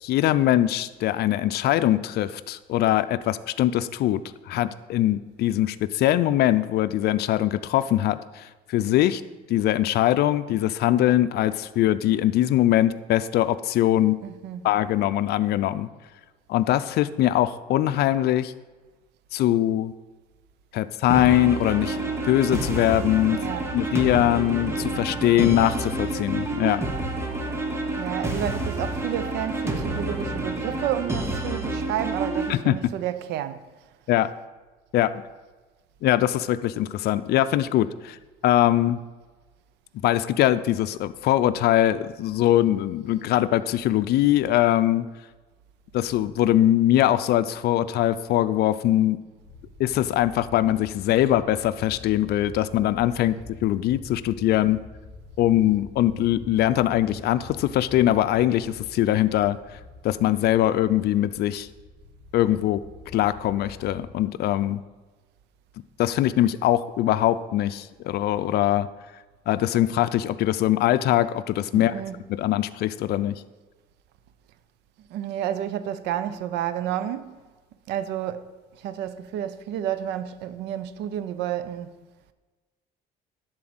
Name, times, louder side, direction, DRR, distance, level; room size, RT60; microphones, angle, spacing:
voice 1, 0.0-4.2 4.5-9.2 9.5-14.2 14.6-15.9 16.5-18.5 19.3-19.9 20.7-23.4 23.7-26.8 32.5-32.8 34.1-34.3 34.9-35.1 36.0-38.2 38.4-39.0 40.0-45.1 45.9-49.2 49.8-53.4 53.6-54.8 55.4-59.6 60.0-61.7 62.3-62.8 63.1-64.8 66.0-68.9 69.5-71.9 72.3-73.4, left 13 dB, 70° left, 0.5 m, -22 dB
voice 2, 14.2-14.6 23.3-23.6 27.9-33.6 71.7-72.2 75.1-77.4 77.9-78.5 78.8-81.9, right 11 dB, 90° right, 0.7 m, -30 dB
sound 1, 21.1-32.5, right 2 dB, 15° right, 1.5 m, -29 dB
sound 2, 49.4-64.1, left 3 dB, 45° left, 2.2 m, -45 dB
11.5 x 4.4 x 7.8 m
cardioid pair, 110°, 17 cm